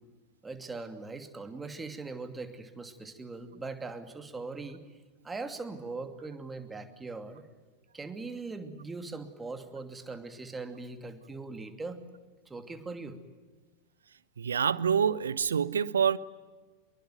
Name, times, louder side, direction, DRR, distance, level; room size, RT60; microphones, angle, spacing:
voice 1, 0.4-4.8 5.2-7.5 7.9-12.0 12.5-13.2, right 3 dB, 10° right, 2.7 m, -40 dB
voice 2, 14.4-16.2, right 7 dB, 70° right, 0.9 m, -26 dB
25.5 x 23.0 x 9.3 m
figure-of-eight pair, 90°, 0 cm